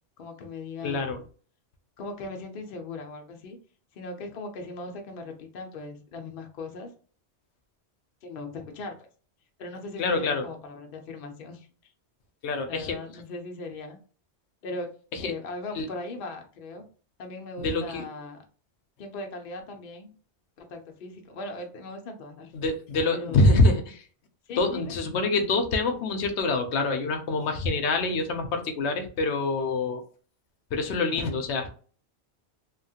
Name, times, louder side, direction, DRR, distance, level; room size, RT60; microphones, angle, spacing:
voice 1, 0.2-1.2 2.0-3.6 3.9-6.9 8.2-9.0 9.6-11.7 12.7-14.0 14.6-14.9 15.2-16.9 17.2-18.4 19.0-20.1 20.6-22.5 23.1-23.7 24.5-24.9, left 2 dB, 60° left, 4 dB, 0.8 m, -39 dB
voice 2, 0.8-1.2 10.0-10.4 12.4-13.0 15.1-15.3 15.7-15.9 17.6-18.0 22.5-24.0 24.6-30.0 30.7-31.7, left 2 dB, 90° left, 5 dB, 0.9 m, -25 dB
2.9 x 2.3 x 2.7 m, 0.41 s
omnidirectional pair, 1.1 m